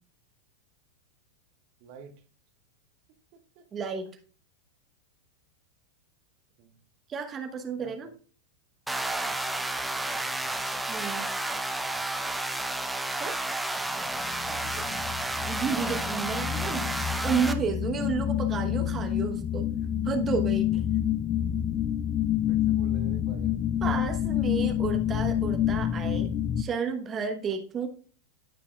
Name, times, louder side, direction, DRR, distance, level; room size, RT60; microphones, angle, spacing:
voice 1, 1.8-2.2 3.3-3.7 6.6-6.8 7.8-8.1 10.0-10.5 14.3-15.1 22.5-23.6, right 6 dB, 45° right, 7 dB, 1.2 m, -49 dB
voice 2, 3.7-4.1 7.1-8.1 10.9-11.3 13.2-13.4 15.5-16.8 17.2-19.7 20.0-20.8 23.8-27.9, right 6 dB, 25° right, 5 dB, 1.1 m, -31 dB
sound 1, 8.9-17.5, right 2 dB, 5° right, 0.8 m, -31 dB
sound 2, 14.2-26.6, left 11 dB, 30° left, 0.4 m, -28 dB
15.5 x 5.9 x 2.4 m, 0.42 s
figure-of-eight pair, 90°, 0 cm